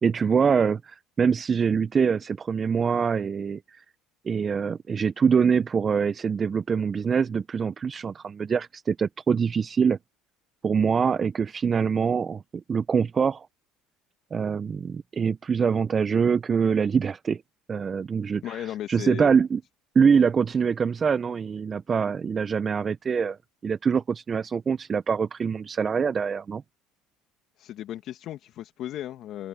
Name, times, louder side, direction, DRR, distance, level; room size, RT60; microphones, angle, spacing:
voice 1, 0.0-3.8 4.2-10.0 10.6-12.4 12.7-13.5 14.3-17.4 17.7-19.6 19.9-23.4 23.6-26.6, right 6 dB, 35° right, 0.6 m, -24 dB
voice 2, 18.4-19.3 27.6-29.5, left 12 dB, 60° left, 1.6 m, -35 dB
supercardioid pair, 85°, 0 cm